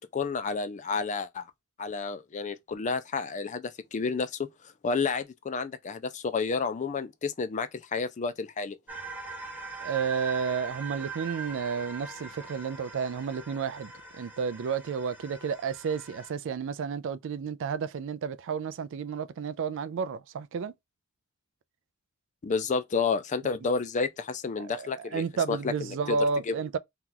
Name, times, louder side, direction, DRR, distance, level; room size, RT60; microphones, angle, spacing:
voice 1, 0.1-1.4 1.8-8.8 22.4-26.2 26.5-26.6, left 4 dB, 35° left, 0.4 m, -30 dB
sound 1, 8.9-16.3, right 4 dB, 5° right, 0.7 m, -42 dB
voice 2, 9.8-20.7 24.6-26.8, right 6 dB, 60° right, 0.3 m, -31 dB
2.9 x 2.4 x 3.7 m
head